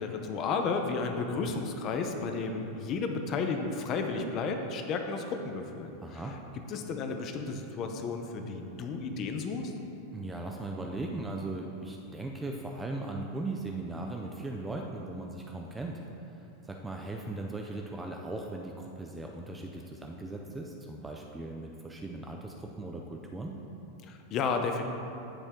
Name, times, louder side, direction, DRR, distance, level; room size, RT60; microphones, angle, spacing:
voice 1, 0.0-6.2 6.7-9.7 24.0-24.8, left 4 dB, 25° left, 5 dB, 0.7 m, -33 dB
voice 2, 6.0-6.4 10.1-16.0 16.3-23.6, right 2 dB, 5° right, 1 dB, 0.4 m, -38 dB
15.5 x 5.2 x 3.7 m, 2.9 s
supercardioid pair, 170°, 0 cm